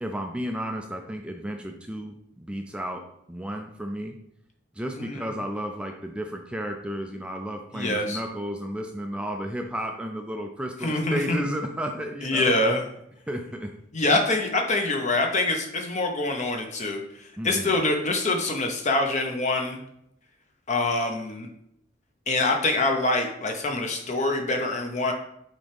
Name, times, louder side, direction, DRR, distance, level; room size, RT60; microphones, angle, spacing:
voice 1, 0.0-4.2 4.7-12.5 13.3-13.7 17.4-17.8, equal, 5° right, 3 dB, 0.4 m, -33 dB
voice 2, 5.0-5.3 7.7-8.2 10.8-11.4 12.2-12.8 13.9-19.8 20.7-21.5 22.3-25.1, left 2 dB, 40° left, 3 dB, 1.0 m, -25 dB
6.1 x 4.4 x 3.5 m, 0.75 s
head